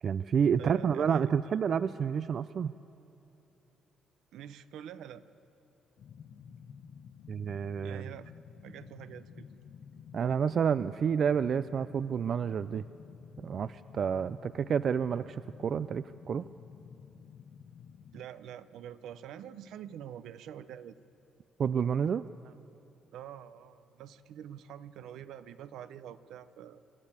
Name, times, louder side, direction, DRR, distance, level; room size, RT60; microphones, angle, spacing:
voice 1, 0.0-2.7 7.3-8.1 10.1-12.8 13.4-16.4 21.6-22.3, right 7 dB, 55° right, 14 dB, 0.4 m, -29 dB
voice 2, 0.6-1.3 4.3-5.2 7.8-8.3 8.6-9.5 18.1-21.0 22.4-22.5 23.1-26.8, right 10 dB, 85° right, 13 dB, 0.7 m, -46 dB
sound 1, 6.0-18.2, left 7 dB, 65° left, 0.9 m, -51 dB
26.5 x 12.0 x 8.8 m, 2.7 s
cardioid pair, 90°, 0 cm